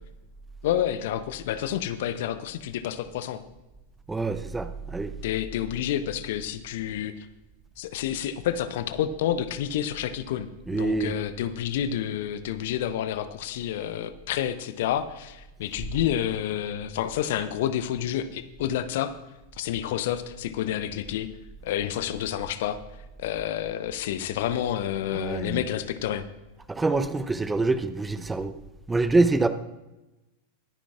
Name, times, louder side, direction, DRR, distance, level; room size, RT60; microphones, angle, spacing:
voice 1, 0.6-3.4 5.2-7.1 7.8-19.1 19.6-21.3 21.6-22.8 23.2-26.2, left 10 dB, 55° left, 12 dB, 0.7 m, -29 dB
voice 2, 4.1-5.1 10.7-11.1 25.1-25.6 26.7-28.5 28.9-29.5, right 3 dB, 10° right, 11 dB, 0.7 m, -25 dB
22.0 x 10.0 x 2.4 m, 1.0 s
figure-of-eight pair, 90°, 0 cm